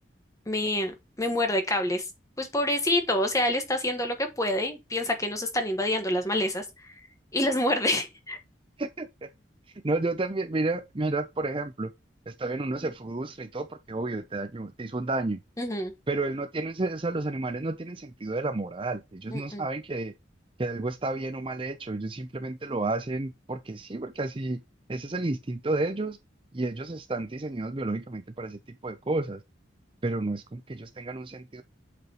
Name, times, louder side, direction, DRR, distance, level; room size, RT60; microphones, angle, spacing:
voice 1, 0.5-2.1 2.4-6.9 7.3-8.4 15.6-15.9 19.3-19.6, left 1 dB, 15° left, 1.3 m, -27 dB
voice 2, 8.8-9.3 9.8-11.9 12.3-15.4 16.1-20.1 20.6-24.6 24.9-26.2 26.5-29.4 30.0-31.6, right 2 dB, 30° right, 0.6 m, -31 dB
8.0 x 5.0 x 3.0 m
head